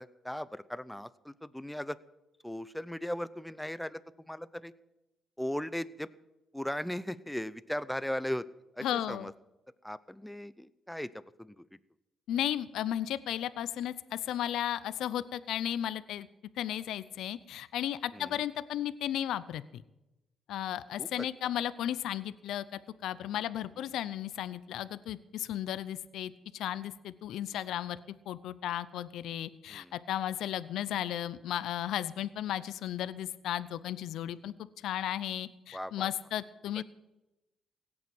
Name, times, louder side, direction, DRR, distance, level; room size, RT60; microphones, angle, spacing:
voice 1, 0.0-2.0 2.4-4.7 5.4-6.1 6.5-8.4 8.7-9.3 9.8-11.6 18.1-18.4 21.0-21.3 23.8-23.9 29.7-29.9 35.7-36.1 36.8-36.9, left 1 dB, 5° left, 16 dB, 0.7 m, -38 dB
voice 2, 8.8-9.3 12.3-16.3 16.6-19.8 20.5-28.0 28.3-36.8, left 11 dB, 80° left, 16 dB, 0.6 m, -35 dB
17.0 x 8.7 x 7.9 m, 0.98 s
cardioid pair, 90°, 0 cm